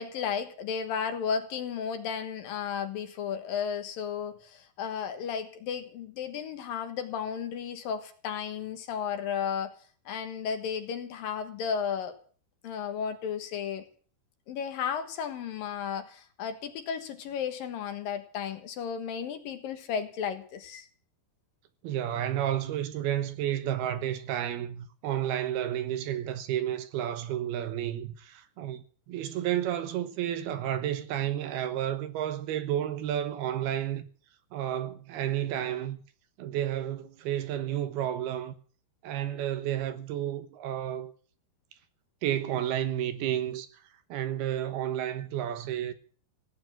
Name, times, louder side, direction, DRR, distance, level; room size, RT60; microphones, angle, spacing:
voice 1, 0.0-9.7 10.1-12.2 12.6-13.9 14.5-20.9, left 7 dB, 65° left, 2.7 m, -34 dB
voice 2, 21.8-34.0 34.5-36.0 36.4-38.6 39.0-41.1 42.2-43.7 44.1-45.9, right 11 dB, 70° right, 2.9 m, -31 dB
17.0 x 8.5 x 9.1 m
omnidirectional pair, 5.0 m